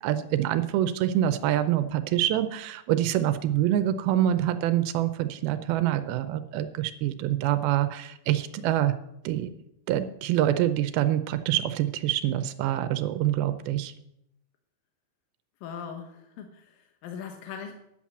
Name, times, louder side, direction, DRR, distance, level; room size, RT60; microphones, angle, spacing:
voice 1, 0.0-9.0 9.3-9.5 9.9-13.9, right 12 dB, 85° right, 11 dB, 2.5 m, -26 dB
voice 2, 15.6-17.7, left 7 dB, 75° left, 4 dB, 2.7 m, -40 dB
10.5 x 7.5 x 7.3 m, 0.81 s
omnidirectional pair, 4.3 m